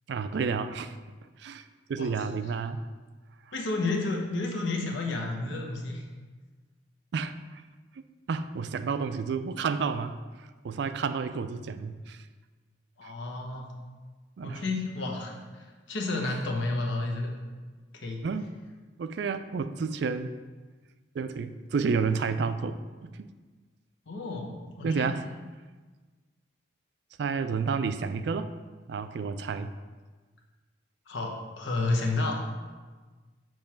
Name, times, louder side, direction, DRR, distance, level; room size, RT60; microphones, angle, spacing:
voice 1, 0.1-1.0 1.4-2.8 7.1-7.6 8.3-10.2 10.6-12.2 13.0-13.1 14.4-14.6 18.2-18.5 19.0-20.3 21.1-23.3 24.8-25.2 27.2-28.5 28.9-29.7, right 5 dB, 60° right, 11 dB, 0.3 m, -30 dB
voice 2, 3.5-6.0 13.0-13.7 14.4-17.3 17.9-18.2 24.1-25.1 31.1-32.4, left 2 dB, 70° left, 1 dB, 1.0 m, -31 dB
6.5 x 3.1 x 5.7 m, 1.4 s
head